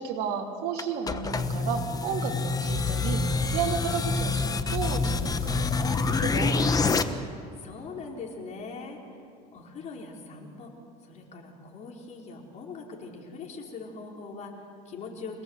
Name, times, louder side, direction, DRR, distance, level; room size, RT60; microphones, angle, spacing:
voice 1, 0.0-7.1, right 6 dB, 65° right, 0 dB, 3.3 m, -33 dB
sound 1, 0.8-7.0, left 4 dB, 20° left, 1.1 m, -27 dB
voice 2, 7.6-9.2 9.5-10.7 11.0-15.4, left 4 dB, 40° left, 0 dB, 4.8 m, -41 dB
26.0 x 18.0 x 8.1 m, 2.5 s
cardioid pair, 125°, 18 cm